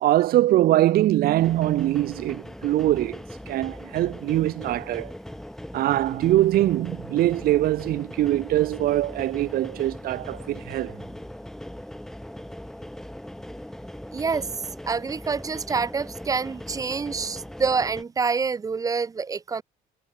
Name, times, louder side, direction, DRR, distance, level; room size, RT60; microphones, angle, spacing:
voice 1, 0.0-5.1 5.7-11.0, right 14 dB, 60° right, 0.6 m, -23 dB
sound 1, 1.4-18.0, left 1 dB, 5° left, 0.8 m, -39 dB
voice 2, 14.1-14.5 14.9-19.6, right 5 dB, 20° right, 0.4 m, -27 dB
cardioid pair, 110°, 17 cm